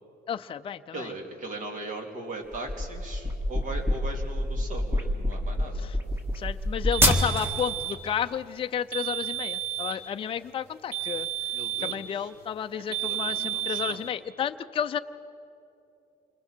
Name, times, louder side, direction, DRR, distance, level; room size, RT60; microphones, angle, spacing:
voice 1, 0.3-1.1 5.8-6.0 6.3-11.5 11.8-15.0, left 8 dB, 35° left, 8 dB, 0.5 m, -32 dB
voice 2, 0.9-5.9 11.5-12.3 13.0-14.1, right 2 dB, 50° right, 2 dB, 2.9 m, -39 dB
sound 1, 2.5-7.7, left 1 dB, 15° right, 1.8 m, -27 dB
sound 2, 6.9-8.0 8.9-10.0 10.9-12.1 12.9-14.0, right 12 dB, 75° right, 2.4 m, -32 dB
27.5 x 21.5 x 4.5 m, 2.8 s
cardioid pair, 110°, 17 cm